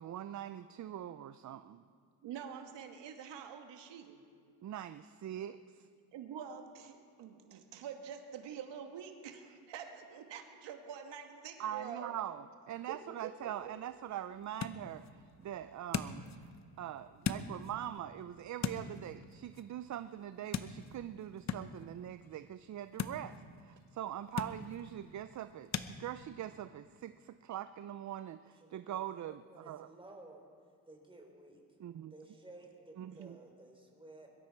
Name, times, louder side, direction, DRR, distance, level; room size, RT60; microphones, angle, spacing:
voice 1, 0.0-1.8 4.6-5.9 11.6-16.5 16.8-29.9 31.8-32.1 33.0-33.4, right 11 dB, 40° right, 12 dB, 0.5 m, -43 dB
voice 2, 2.2-4.2 6.1-12.1 12.9-13.7, right 8 dB, 75° right, 5 dB, 1.5 m, -46 dB
sound 1, 13.4-25.9, left 6 dB, 40° left, 0.9 m, -43 dB
voice 3, 28.5-30.5 30.9-31.8 32.1-34.3, right 2 dB, 10° right, 1 dB, 3.5 m, -55 dB
22.5 x 12.5 x 4.7 m, 2.2 s
cardioid pair, 90°, 44 cm